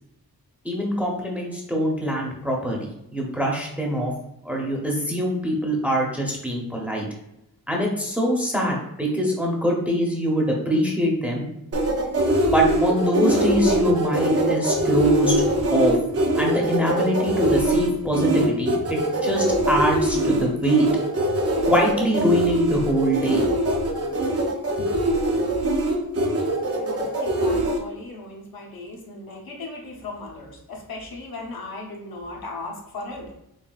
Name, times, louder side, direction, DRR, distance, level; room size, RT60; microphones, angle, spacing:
voice 1, 0.6-4.1 4.4-7.0 7.7-11.5 12.5-15.4 15.7-16.0 16.4-20.8 21.6-23.4, equal, 5° right, -1 dB, 0.7 m, -23 dB
sound 1, 11.7-27.8, right 1 dB, 40° right, 0.6 m, -22 dB
voice 2, 26.8-33.3, left 2 dB, 75° left, -1 dB, 1.0 m, -37 dB
4.1 x 3.3 x 2.4 m, 0.83 s
wide cardioid pair, 135°, 36 cm